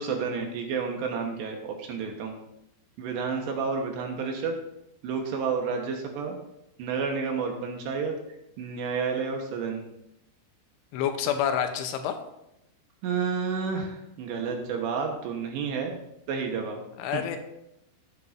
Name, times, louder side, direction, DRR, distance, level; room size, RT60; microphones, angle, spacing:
voice 1, 0.0-2.4 3.0-4.6 5.0-6.4 6.8-8.2 8.6-9.8 13.0-15.9 16.3-16.8 17.1-17.2, right 5 dB, 75° right, 2 dB, 3.1 m, -30 dB
voice 2, 10.9-12.2 17.0-17.4, left 9 dB, 90° left, 7 dB, 3.3 m, -28 dB
17.0 x 8.4 x 2.7 m, 0.84 s
omnidirectional pair, 5.5 m